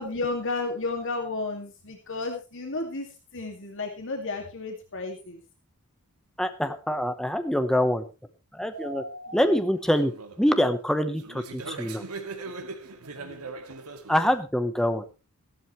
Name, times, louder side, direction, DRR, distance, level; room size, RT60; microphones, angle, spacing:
voice 1, 0.0-3.1 3.3-5.4 9.3-9.4 13.2-13.5, left 3 dB, 60° left, 3 dB, 2.3 m, -32 dB
voice 2, 6.4-8.0 8.5-9.0 9.3-10.1 10.4-12.0 14.1-15.1, equal, ahead, 8 dB, 1.0 m, -25 dB
sound 1, 8.7-10.5 11.2-14.4, right 3 dB, 80° right, 2.1 m, -40 dB
15.0 x 12.5 x 3.2 m, 0.30 s
head